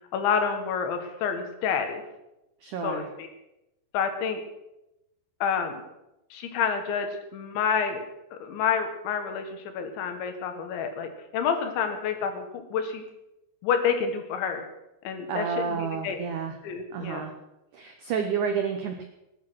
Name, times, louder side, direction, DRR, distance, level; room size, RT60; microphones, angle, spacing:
voice 1, 0.1-2.0 2.8-3.3 3.9-4.4 5.4-5.8 6.3-8.0 8.3-13.0 13.6-14.7 15.1-16.2 16.6-17.3, left 6 dB, 85° left, 6 dB, 4.0 m, -28 dB
voice 2, 2.6-3.1 15.3-16.5 16.9-17.3 17.7-19.0, right 6 dB, 85° right, 5 dB, 1.7 m, -30 dB
20.0 x 10.5 x 6.3 m, 0.91 s
omnidirectional pair, 5.2 m